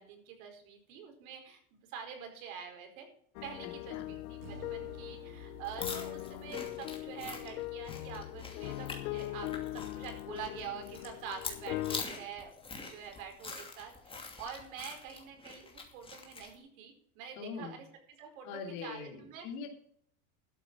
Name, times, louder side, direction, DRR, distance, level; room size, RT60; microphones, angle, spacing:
voice 1, 0.0-3.1 3.4-17.8 18.2-19.5, right 7 dB, 70° right, 4 dB, 4.8 m, -46 dB
sound 1, 3.4-12.0, left 16 dB, 90° left, 0.9 m, -40 dB
voice 2, 3.6-4.1 17.4-17.8 18.4-19.7, left 5 dB, 60° left, 1 dB, 2.9 m, -42 dB
Acoustic guitar / Strum, 4.4-7.7, right 6 dB, 85° right, 3.4 m, -55 dB
sound 2, 5.6-16.5, left 4 dB, 10° left, 2.6 m, -45 dB
12.5 x 8.5 x 6.2 m, 0.64 s
supercardioid pair, 135°, 43 cm